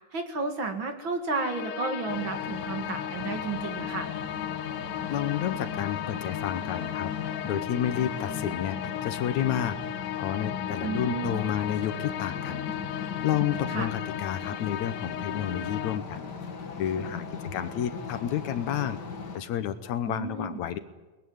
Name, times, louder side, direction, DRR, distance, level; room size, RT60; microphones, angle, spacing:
voice 1, 0.1-4.1 10.8-11.4 13.7-13.9 20.1-20.6, right 4 dB, 45° right, 6 dB, 2.3 m, -32 dB
sound 1, 1.3-16.0, left 12 dB, 85° left, 2.5 m, -36 dB
sound 2, 2.1-19.4, left 6 dB, 40° left, 2.0 m, -37 dB
voice 2, 5.1-16.3 16.8-17.3 17.5-19.0 19.3-20.8, left 10 dB, 70° left, 11 dB, 2.3 m, -31 dB
22.5 x 20.5 x 9.4 m, 1.2 s
omnidirectional pair, 3.5 m